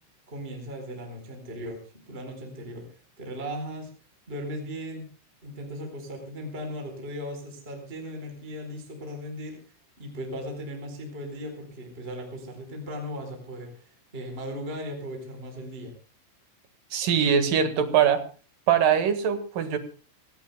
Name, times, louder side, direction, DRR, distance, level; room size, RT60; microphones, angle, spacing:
voice 1, 0.3-1.8 2.1-2.9 3.2-3.9 4.3-5.1 5.4-9.6 10.0-15.9, equal, 15° right, 3 dB, 4.0 m, -37 dB
voice 2, 16.9-18.2 18.7-19.8, right 8 dB, 60° right, 8 dB, 2.7 m, -22 dB
26.0 x 17.5 x 2.2 m, 0.37 s
omnidirectional pair, 5.5 m